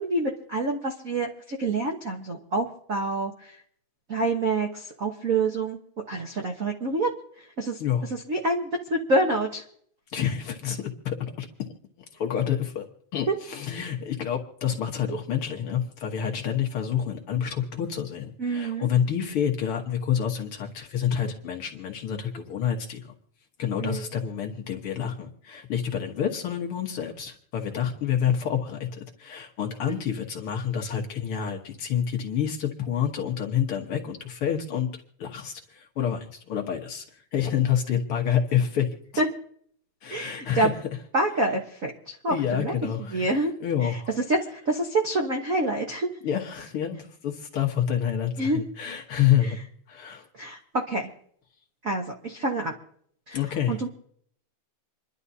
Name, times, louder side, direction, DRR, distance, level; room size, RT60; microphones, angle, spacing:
voice 1, 0.0-3.5 4.1-5.8 6.1-7.1 7.4-7.8 8.1-9.6 13.3-13.4 18.4-18.9 23.8-24.1 29.9-30.0 39.2-39.3 40.1-40.7 41.1-42.7 43.0-43.5 43.8-43.9 44.3-46.1 48.4-48.6 49.4-49.5 50.3-51.1 51.8-52.8 53.3-53.4 53.7-53.9, right 2 dB, 85° right, 1 dB, 0.7 m, -27 dB
voice 2, 10.1-11.5 12.2-12.9 13.1-23.0 23.6-34.9 35.2-38.9 40.0-40.7 42.3-43.3 43.6-44.1 46.2-49.6 49.9-50.3 53.3-53.8, left 9 dB, 55° left, 2 dB, 1.8 m, -28 dB
28.0 x 11.5 x 2.8 m, 0.63 s
omnidirectional pair, 3.5 m